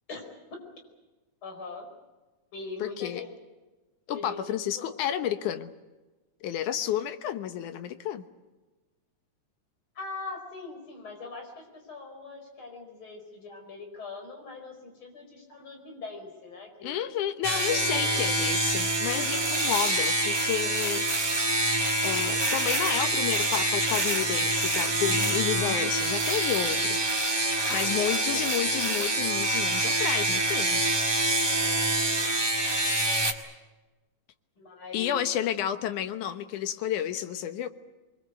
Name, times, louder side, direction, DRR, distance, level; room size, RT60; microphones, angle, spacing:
voice 1, 1.4-1.9 2.5-3.4 4.1-4.9 10.0-17.1 17.5-18.3 19.1-19.6 27.6-28.5 31.5-32.4 34.6-35.2, left 3 dB, 40° left, 3 dB, 5.6 m, -42 dB
voice 2, 2.8-3.2 4.1-5.7 6.4-8.2 16.8-21.1 22.0-27.0 27.7-30.8 34.9-37.7, left 10 dB, 90° left, 10 dB, 2.6 m, -31 dB
sound 1, 17.4-33.3, right 2 dB, 15° right, 1.1 m, -26 dB
25.0 x 22.0 x 8.1 m, 1.2 s
omnidirectional pair, 3.4 m